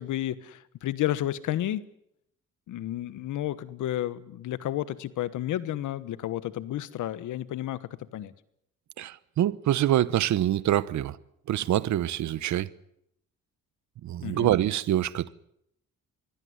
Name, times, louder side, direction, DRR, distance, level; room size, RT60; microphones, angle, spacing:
voice 1, 0.0-1.8 2.7-8.3 14.2-14.5, left 13 dB, 80° left, 1.3 m, -31 dB
voice 2, 9.0-11.2 11.5-12.7 14.0-15.3, right 12 dB, 70° right, 1.0 m, -25 dB
23.0 x 16.5 x 9.6 m
cardioid pair, 90°, 30 cm